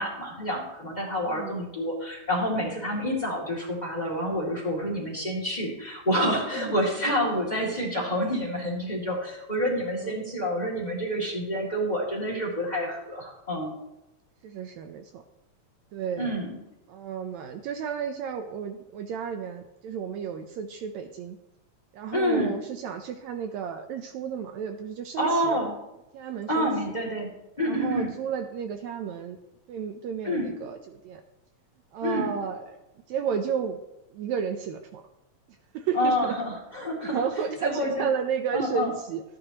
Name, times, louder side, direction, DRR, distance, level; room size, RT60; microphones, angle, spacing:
voice 1, 0.0-13.7 16.2-16.6 22.1-22.5 25.2-25.7 26.5-27.3 27.6-28.1 30.2-30.5 32.0-32.3 35.9-37.2 37.6-38.0 38.5-38.9, equal, 15° left, -3 dB, 2.1 m, -28 dB
voice 2, 1.3-1.6 6.4-6.8 10.0-10.1 14.4-15.2 15.9-16.3 16.9-21.4 21.9-25.6 26.1-26.7 27.6-29.4 29.7-31.2 31.9-32.8 33.1-33.8 34.1-35.0 35.7-36.4 37.0-39.2, right 7 dB, 75° right, 6 dB, 1.8 m, -32 dB
13.5 x 9.7 x 2.9 m, 0.92 s
omnidirectional pair, 3.5 m